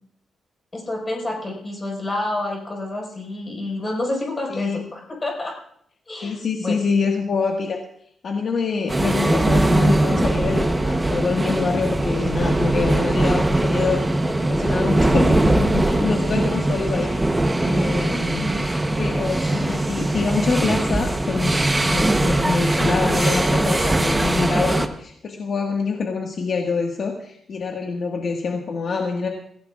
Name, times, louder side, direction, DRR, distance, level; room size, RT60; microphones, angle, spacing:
voice 1, 0.7-5.5 6.1-6.8 18.1-18.7, left 2 dB, 25° left, -1 dB, 5.0 m, -29 dB
voice 2, 4.5-4.8 6.2-7.8 8.2-17.1 17.6-29.3, left 4 dB, 55° left, 0 dB, 1.7 m, -25 dB
sound 1, 8.9-24.9, right 1 dB, 10° right, 0.9 m, -21 dB
25.5 x 16.0 x 2.5 m, 0.69 s
wide cardioid pair, 145°, 0 cm